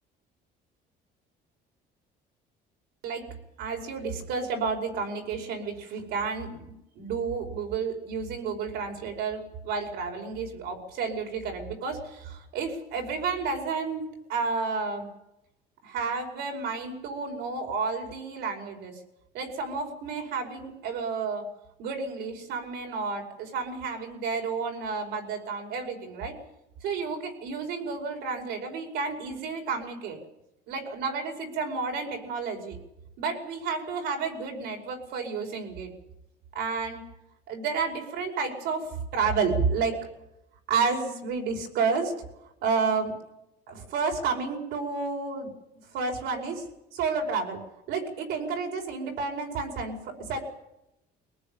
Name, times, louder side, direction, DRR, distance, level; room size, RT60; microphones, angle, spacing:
voice 1, 3.6-14.0 14.3-15.1 15.8-18.9 19.3-21.4 21.8-26.3 26.8-30.2 30.7-32.8 33.2-35.9 36.5-37.0 37.5-38.9 39.1-40.0 40.7-42.1 42.6-43.1 43.7-45.5 45.9-46.6 46.9-47.6 47.9-50.4, right 5 dB, 75° right, 3 dB, 5.4 m, -31 dB
23.5 x 19.0 x 9.0 m, 0.87 s
cardioid pair, 165°, 18 cm